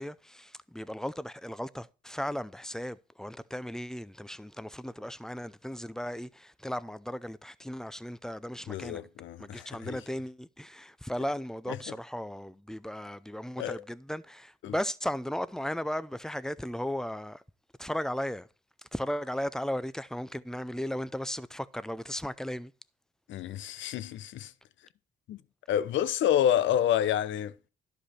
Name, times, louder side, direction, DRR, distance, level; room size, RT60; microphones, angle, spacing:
voice 1, 0.0-9.0 9.4-17.4 17.8-18.5 18.9-22.7, equal, 5° left, 0.5 m, -36 dB
voice 2, 8.7-10.0 11.7-11.8 13.6-13.8 14.6-14.7 23.3-24.5 25.3-25.4 25.7-27.5, left 10 dB, 70° left, 0.6 m, -28 dB
11.5 x 5.4 x 4.2 m
cardioid pair, 90°, 20 cm